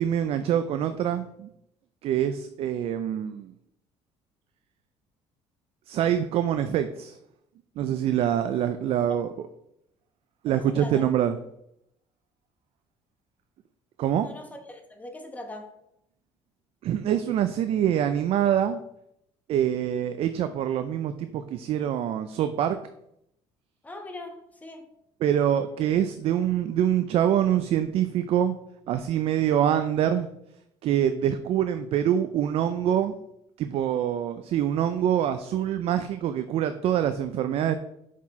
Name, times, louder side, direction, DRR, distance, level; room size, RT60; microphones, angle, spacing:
voice 1, 0.0-1.5 2.0-3.5 5.9-7.2 7.8-9.3 10.4-11.4 14.0-14.3 16.8-18.8 19.5-22.8 25.2-28.6 28.9-30.3 30.8-33.1 33.6-37.8, right 10 dB, 60° right, 10 dB, 0.4 m, -25 dB
voice 2, 10.5-11.1 14.2-15.7 23.8-24.9, left 1 dB, 15° left, 4 dB, 1.1 m, -41 dB
6.1 x 4.5 x 4.2 m, 0.78 s
cardioid pair, 115°, 11 cm